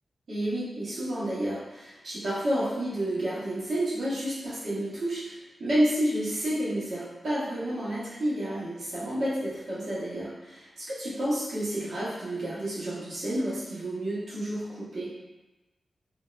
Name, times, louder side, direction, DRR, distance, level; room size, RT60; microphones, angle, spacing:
voice 1, 0.3-15.1, right 1 dB, 75° right, -10 dB, 1.1 m, -30 dB
3.7 x 2.1 x 2.4 m, 1.1 s
cardioid pair, 75°, 0 cm